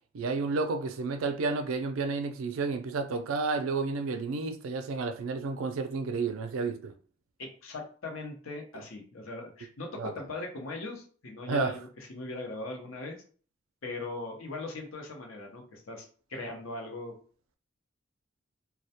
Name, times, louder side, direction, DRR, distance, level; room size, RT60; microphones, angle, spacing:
voice 1, 0.1-6.9 10.0-10.1 11.5-11.8, right 4 dB, 90° right, 0.4 m, -31 dB
voice 2, 7.4-13.2 13.8-17.1, left 2 dB, 85° left, 0.7 m, -40 dB
2.2 x 2.1 x 2.7 m
head